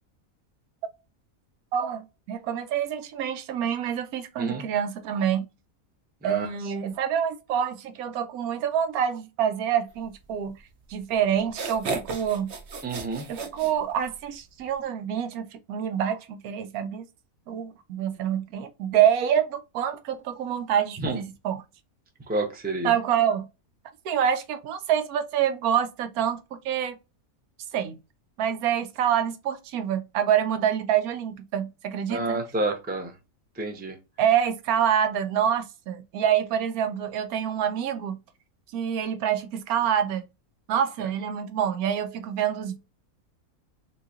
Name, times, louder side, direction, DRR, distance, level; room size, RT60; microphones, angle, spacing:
voice 1, 1.7-5.5 6.2-10.6 10.9-12.5 13.3-17.1 17.5-21.6 22.8-23.5 24.0-27.0 27.7-28.0 28.4-32.4 34.2-38.2 38.7-40.3 40.7-42.8, right 9 dB, 85° right, 1.1 m, -26 dB
sound 1, 10.9-11.0 11.4-14.3, right 4 dB, 55° right, 0.9 m, -34 dB
voice 2, 12.8-13.3 21.0-21.2 22.3-22.9 32.1-33.1 33.6-34.0, right 2 dB, 10° right, 0.4 m, -29 dB
4.0 x 2.8 x 2.4 m
omnidirectional pair, 1.5 m